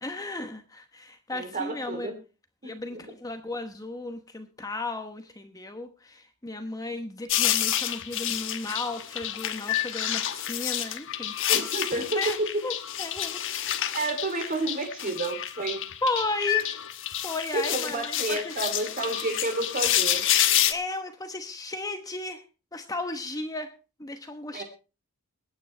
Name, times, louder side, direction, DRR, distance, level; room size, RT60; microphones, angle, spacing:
voice 1, 0.0-2.1 2.6-11.3 12.2-12.4 12.6-13.4 16.0-16.8 17.2-18.5 20.7-22.4 22.7-23.7 24.0-24.6, left 2 dB, 15° left, 6 dB, 1.0 m, -34 dB
voice 2, 1.3-2.1 2.6-3.0 11.5-12.2 13.9-15.8 17.5-20.2 24.5-24.6, right 2 dB, 40° right, 6 dB, 3.1 m, -31 dB
sound 1, 7.3-20.7, left 11 dB, 60° left, 1.1 m, -28 dB
23.0 x 9.3 x 3.3 m, 0.32 s
head